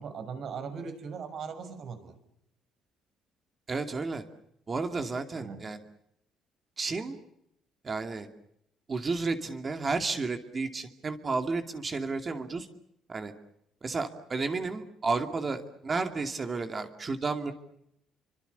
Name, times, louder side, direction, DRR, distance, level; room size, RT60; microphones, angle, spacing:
voice 1, 0.0-2.2 5.3-5.6, right 6 dB, 55° right, 9 dB, 6.7 m, -39 dB
voice 2, 3.7-4.2 4.7-5.8 6.8-7.2 7.8-8.3 8.9-12.7 13.1-13.3 13.8-17.5, right 4 dB, 30° right, 6 dB, 2.5 m, -32 dB
30.0 x 25.0 x 6.8 m, 0.75 s
cardioid pair, 120°, 0 cm